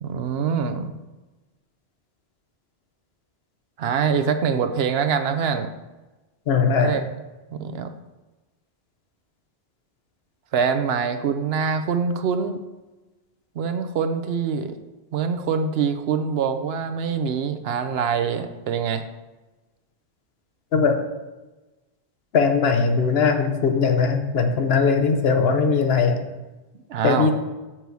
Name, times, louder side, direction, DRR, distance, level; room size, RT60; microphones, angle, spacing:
voice 1, 0.0-0.9 3.8-5.7 6.8-7.0 7.5-7.9 10.5-12.6 13.6-14.8 15.1-19.0 26.9-27.3, right 6 dB, 70° right, 8 dB, 0.9 m, -24 dB
voice 2, 6.5-7.0 20.7-21.0 22.3-26.2 27.0-27.3, left 5 dB, 70° left, 6 dB, 1.0 m, -20 dB
6.9 x 6.0 x 4.6 m, 1.1 s
omnidirectional pair, 1.1 m